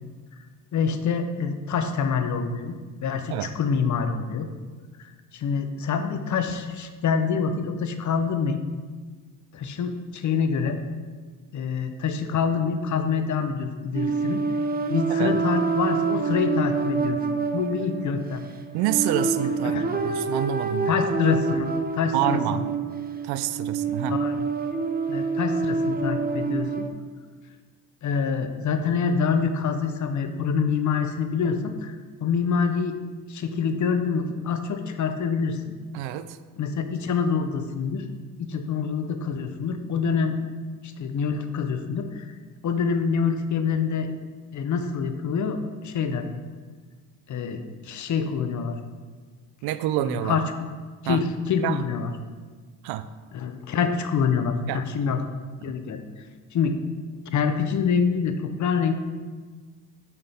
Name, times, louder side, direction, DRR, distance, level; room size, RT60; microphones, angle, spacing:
voice 1, 0.7-2.8 3.0-4.5 5.0-8.6 9.5-10.8 11.5-14.4 14.9-17.2 17.5-18.4 19.6-19.8 20.9-22.6 24.1-24.5 25.1-26.9 28.0-31.9 32.2-33.0 33.3-35.6 36.6-38.1 38.4-40.4 40.8-42.3 42.6-44.1 44.5-46.3 47.3-48.8 50.1-50.4 51.0-52.1 53.3-55.2 55.6-56.0 56.5-56.8 57.3-58.9, left 6 dB, 45° left, 8 dB, 0.8 m, -26 dB
sound 1, 13.9-26.9, right 4 dB, 25° right, 0.6 m, -27 dB
voice 2, 18.7-20.9 22.1-22.6 23.2-24.2 35.9-36.4 49.6-50.4 51.0-51.2 51.6-51.8 52.8-53.1 54.7-54.8, right 13 dB, 70° right, 13 dB, 0.5 m, -27 dB
6.6 x 5.8 x 3.5 m, 1.4 s
supercardioid pair, 70°, 41 cm